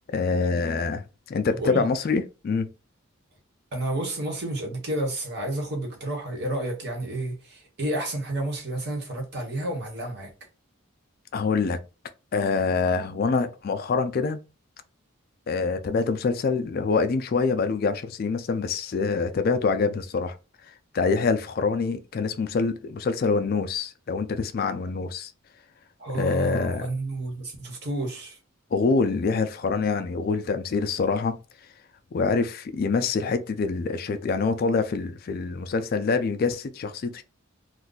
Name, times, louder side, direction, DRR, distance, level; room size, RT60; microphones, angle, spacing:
voice 1, 0.1-2.7 11.3-11.8 12.3-14.4 15.5-20.4 20.6-25.3 26.1-26.9 28.7-31.4 32.1-37.2, left 4 dB, 45° left, 0.3 m, -25 dB
voice 2, 1.6-1.9 3.7-10.3 26.0-28.4, right 1 dB, 55° right, 1.1 m, -30 dB
2.5 x 2.2 x 3.8 m
head